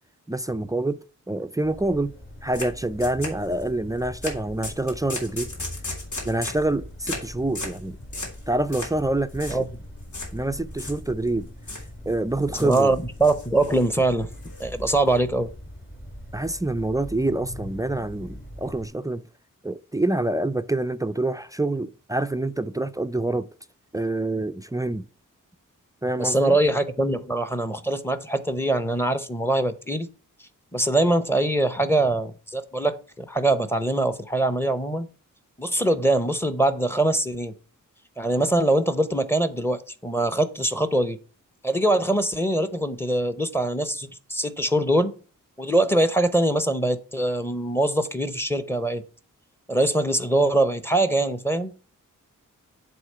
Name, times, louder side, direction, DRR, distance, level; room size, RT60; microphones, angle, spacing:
voice 1, 0.3-2.1 2.4-5.5 6.2-8.0 8.5-9.6 10.3-11.5 12.1-12.9 16.3-19.2 19.6-23.5 23.9-25.1 26.0-26.6, right 2 dB, 10° right, 0.3 m, -26 dB
sound 1, 1.6-18.9, equal, 35° left, 2.9 m, -41 dB
sound 2, 2.5-2.7 3.0-3.7 4.2-4.4 4.6-6.7 7.1-7.3 7.6-7.8 8.1-8.4 8.7-9.0 9.3-9.6 10.1-10.3 10.7-11.3 11.7-11.9 12.4-12.9 13.2-13.9 14.3-15.1, left 2 dB, 65° left, 3.2 m, -35 dB
voice 2, 12.6-14.3 14.6-15.5 26.2-30.1 30.7-35.1 35.6-37.5 38.2-41.2 41.6-45.1 45.6-49.0 49.7-51.7, right 1 dB, 5° left, 0.8 m, -23 dB
7.9 x 3.7 x 6.6 m
wide cardioid pair, 115°, 32 cm